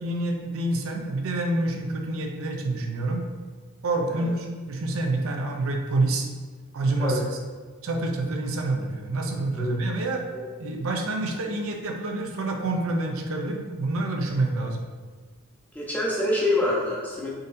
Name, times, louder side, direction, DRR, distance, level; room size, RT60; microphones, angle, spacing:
voice 1, 0.0-3.3 3.8-6.3 6.7-7.2 7.8-10.2 10.6-14.8, right 2 dB, 70° right, 3 dB, 0.5 m, -27 dB
voice 2, 15.7-17.3, left 1 dB, 10° left, -5 dB, 0.8 m, -26 dB
4.0 x 3.8 x 2.6 m, 1.5 s
head